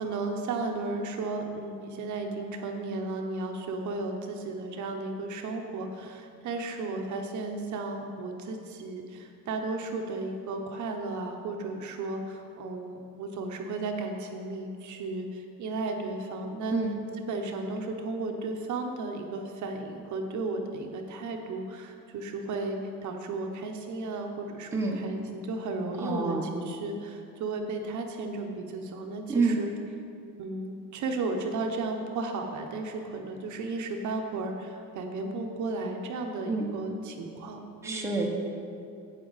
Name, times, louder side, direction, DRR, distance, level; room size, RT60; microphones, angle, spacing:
voice 1, 0.0-16.8 17.3-29.7 30.4-38.2, right 3 dB, 55° right, 3 dB, 0.9 m, -34 dB
voice 2, 26.0-26.4 29.3-29.6 36.5-36.7 37.8-38.3, right 3 dB, 10° right, -1 dB, 0.8 m, -27 dB
8.5 x 8.1 x 4.0 m, 2.5 s
cardioid pair, 145°, 35 cm